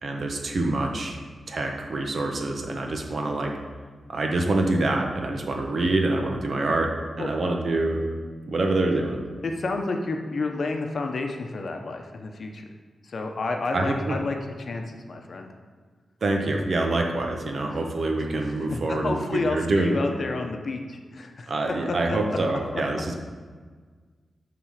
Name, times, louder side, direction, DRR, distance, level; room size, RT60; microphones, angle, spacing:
voice 1, 0.0-1.2 1.5-3.5 4.1-6.9 7.2-8.0 8.4-9.2 13.7-14.2 16.2-19.9 21.5-23.1, right 2 dB, 55° right, 2 dB, 1.1 m, -26 dB
voice 2, 9.4-12.7 13.0-15.5 17.7-17.8 18.5-21.5 21.9-22.4 22.7-22.8, left 3 dB, 55° left, 4 dB, 0.9 m, -30 dB
9.1 x 3.9 x 6.4 m, 1.5 s
wide cardioid pair, 125°, 0 cm